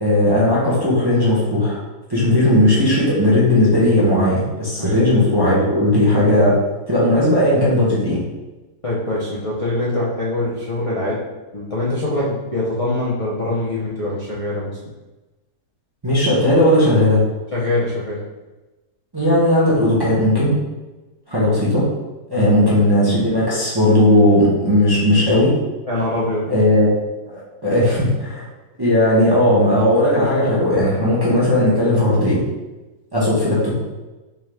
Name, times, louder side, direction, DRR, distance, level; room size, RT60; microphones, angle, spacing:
voice 1, 0.0-1.8 2.1-6.5 6.9-8.2 16.0-17.2 19.1-20.6 21.3-21.9 22.3-25.5 26.5-26.9 27.3-28.5 28.8-32.4 33.1-33.7, left 1 dB, 20° right, -7 dB, 0.7 m, -16 dB
voice 2, 8.8-11.2 11.5-14.8 17.5-18.2 22.3-22.5 25.9-26.5, left 1 dB, 55° left, -8 dB, 0.3 m, -23 dB
3.7 x 3.6 x 3.3 m, 1.1 s
omnidirectional pair, 1.8 m